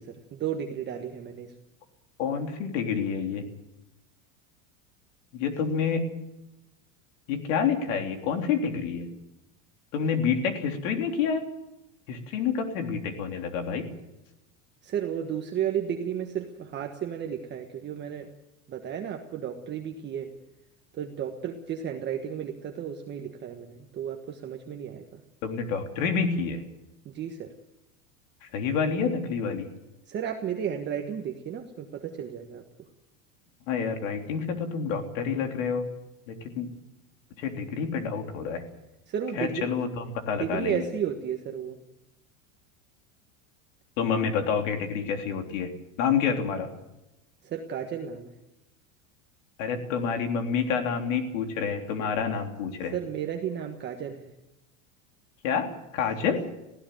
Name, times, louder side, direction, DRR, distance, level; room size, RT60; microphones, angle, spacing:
voice 1, 0.0-1.5 14.8-18.3 18.7-20.3 20.9-25.2 27.0-27.5 30.1-32.6 39.1-39.7 40.4-41.8 47.4-48.3 52.9-54.3, right 8 dB, 25° right, 3 dB, 1.4 m, -33 dB
voice 2, 2.2-3.5 5.3-6.1 7.3-9.1 9.9-11.4 12.1-13.9 25.4-26.6 28.4-29.7 33.7-35.9 36.3-36.7 37.4-38.6 39.4-40.9 44.0-45.7 46.0-46.7 49.6-53.0 55.4-56.4, left 6 dB, 70° left, 5 dB, 3.6 m, -28 dB
19.0 x 16.0 x 9.2 m, 0.95 s
supercardioid pair, 150°, 40 cm